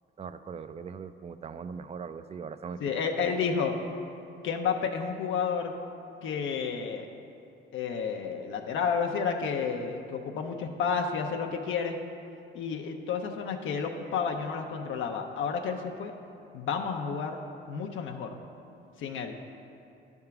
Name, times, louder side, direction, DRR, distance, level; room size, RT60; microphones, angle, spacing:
voice 1, 0.2-3.1, right 6 dB, 30° right, 12 dB, 0.4 m, -40 dB
voice 2, 2.8-3.8 4.4-5.8 6.2-7.1 7.7-12.0 12.5-16.1 16.5-17.4 17.7-18.4 19.0-19.3, left 6 dB, 80° left, 3 dB, 0.7 m, -31 dB
10.5 x 3.6 x 5.8 m, 2.6 s
cardioid pair, 90°, 20 cm